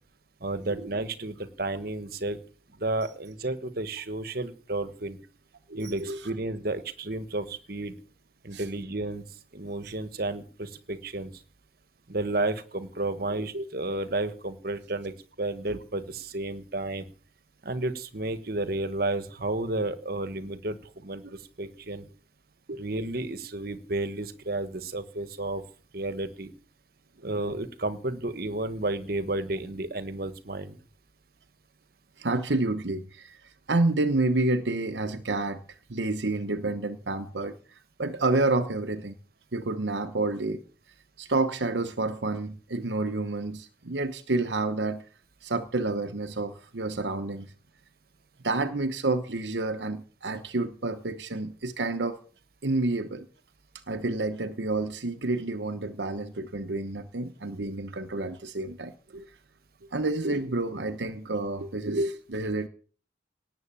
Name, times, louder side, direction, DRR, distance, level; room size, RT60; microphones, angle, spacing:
voice 1, 0.4-2.4 2.7-5.2 5.7-8.0 8.4-9.2 9.5-11.3 12.1-17.1 17.6-22.1 22.7-25.6 25.9-26.5 27.2-30.8, right 2 dB, 55° right, 1.4 m, -32 dB
voice 2, 5.7-6.2 8.5-8.6 13.5-13.6 22.7-22.8 32.2-35.6 35.9-39.1 39.5-40.6 41.2-45.0 45.4-47.5 48.4-52.2 52.6-53.3 53.9-59.3 59.9-62.7, right 2 dB, 75° right, 1.0 m, -29 dB
18.5 x 8.0 x 7.4 m
head